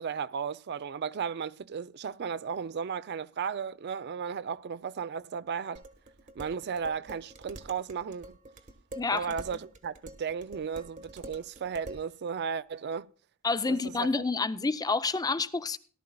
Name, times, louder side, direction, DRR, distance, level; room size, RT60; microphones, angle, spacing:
voice 1, 0.0-5.8 6.4-8.4 9.1-13.1 13.7-14.2, right 6 dB, 50° right, 0.4 m, -35 dB
Dishes pots and pans, 5.7-12.1, right 1 dB, 35° right, 1.3 m, -47 dB
voice 2, 9.0-9.3 13.4-15.8, left 3 dB, 20° left, 0.5 m, -28 dB
18.0 x 12.0 x 2.3 m
head